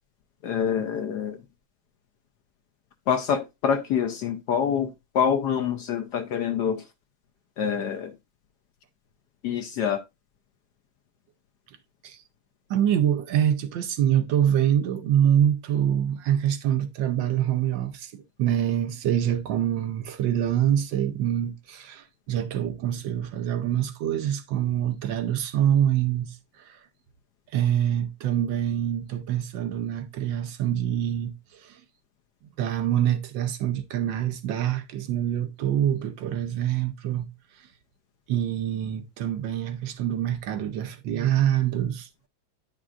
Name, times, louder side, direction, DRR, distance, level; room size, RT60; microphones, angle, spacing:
voice 1, 0.4-1.4 3.1-6.8 7.6-8.1 9.4-10.0, left 8 dB, 70° left, 1.0 m, -26 dB
voice 2, 12.7-26.9 27.5-31.8 32.6-37.3 37.5-37.7 38.3-42.1, right 10 dB, 75° right, 1.3 m, -25 dB
9.8 x 6.1 x 2.4 m
omnidirectional pair, 2.2 m